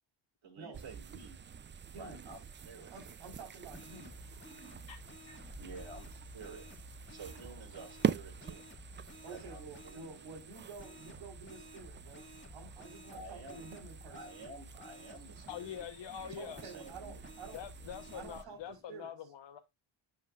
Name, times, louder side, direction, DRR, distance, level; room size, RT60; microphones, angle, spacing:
voice 1, 0.4-1.4 1.9-2.9 5.6-6.6 7.1-8.6 9.3-10.3 13.1-13.7 14.1-15.8 16.2-17.2, right 3 dB, 70° right, 5.2 m, -51 dB
sound 1, 0.7-18.4, right 7 dB, 25° right, 0.4 m, -44 dB
voice 2, 1.9-2.3 2.8-4.4 9.2-14.2 16.4-17.6 18.1-19.3, right 4 dB, 85° right, 3.8 m, -50 dB
sound 2, 2.5-18.8, equal, 10° right, 1.7 m, -61 dB
sound 3, 3.7-10.1 10.8-15.8 16.5-18.2, left 1 dB, 25° left, 2.1 m, -53 dB
voice 3, 15.5-16.6 17.5-19.6, left 9 dB, 65° left, 1.0 m, -44 dB
10.5 x 5.7 x 2.4 m
cardioid pair, 85°, 48 cm